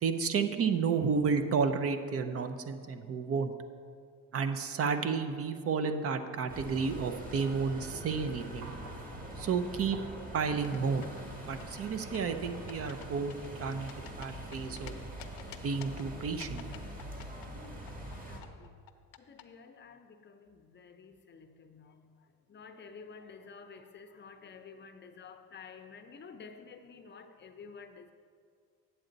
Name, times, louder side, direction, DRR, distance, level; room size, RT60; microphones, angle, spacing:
voice 1, 0.0-3.5 4.3-8.7 9.4-10.0 10.3-11.0 11.4-13.3 13.6-13.9 14.2-14.9 15.6-16.6, right 5 dB, 45° right, 9 dB, 0.6 m, -31 dB
sound 1, 6.5-18.4, right 1 dB, 25° right, 1.7 m, -44 dB
sound 2, 8.6-10.4 13.5-15.3 16.8-16.9, right 1 dB, 75° right, 2.2 m, -51 dB
sound 3, 10.5-11.2 11.6-12.4 12.7-13.1 13.3-14.9 15.2-16.0 16.4-18.2 18.4-19.4, left 14 dB, 70° left, 0.7 m, -49 dB
voice 2, 18.1-18.8 19.2-28.1, left 5 dB, 30° left, 7 dB, 0.6 m, -51 dB
8.6 x 7.8 x 4.0 m, 2.1 s
supercardioid pair, 95°, 34 cm